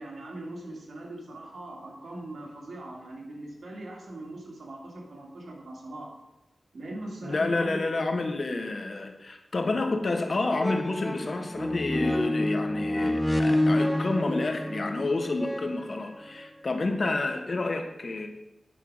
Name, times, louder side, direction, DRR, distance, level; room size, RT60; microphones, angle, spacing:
voice 1, 0.0-6.1 6.7-8.0, right 1 dB, 75° right, -1 dB, 2.4 m, -40 dB
voice 2, 7.2-18.3, left 2 dB, 50° left, 5 dB, 1.2 m, -29 dB
sound 1, 10.1-10.2 10.5-16.5 17.1-17.2, left 1 dB, 5° left, 0.6 m, -28 dB
9.3 x 5.5 x 6.3 m, 0.98 s
wide cardioid pair, 110°, 0 cm